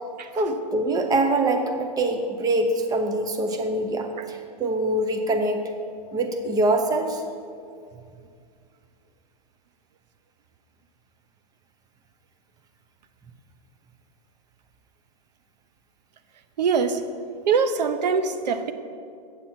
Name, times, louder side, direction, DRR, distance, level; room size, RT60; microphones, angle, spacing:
voice 1, 0.4-5.6 6.1-7.2, right 2 dB, 15° right, 5 dB, 0.8 m, -24 dB
voice 2, 16.6-17.0 17.5-18.7, right 5 dB, 80° right, 10 dB, 0.7 m, -23 dB
8.3 x 7.0 x 4.4 m, 2.3 s
hypercardioid pair, 120°, 21 cm